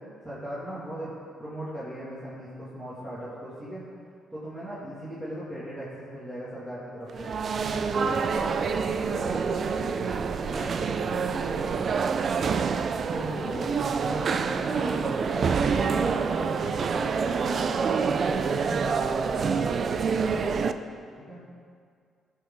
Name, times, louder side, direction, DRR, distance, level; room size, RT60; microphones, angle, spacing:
voice 1, 0.2-1.1 1.4-3.9 4.3-7.3 7.8-8.7 9.0-9.9 10.4-11.8 12.4-17.6 18.0-20.4 21.2-21.4, right 1 dB, 15° right, -10 dB, 2.3 m, -38 dB
sound 1, 7.1-20.7, right 5 dB, 50° right, 0.4 m, -27 dB
13.0 x 6.3 x 3.9 m, 2.2 s
cardioid pair, 90°, 0 cm